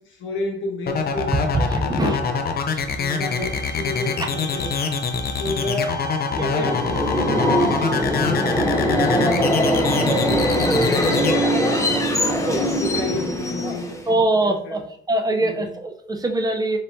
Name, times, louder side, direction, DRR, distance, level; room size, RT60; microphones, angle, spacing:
voice 1, 0.1-2.5 3.0-4.7 5.4-8.2 8.5-11.9 12.5-14.8 15.4-15.7, left 2 dB, 80° left, -1 dB, 1.4 m, -31 dB
sound 1, 0.9-11.3, left 6 dB, 50° left, 0.6 m, -24 dB
voice 2, 1.5-2.2 2.7-2.8 6.3-6.5 12.4-12.6 13.6-13.8 14.1-16.8, right 2 dB, 20° right, 4 dB, 0.7 m, -23 dB
sound 2, 3.1-8.9, equal, 70° right, 1.3 m, -38 dB
Subway metro underground, 6.4-14.1, equal, 15° left, 0.8 m, -21 dB
4.2 x 3.5 x 2.7 m, 0.64 s
cardioid pair, 90°, 20 cm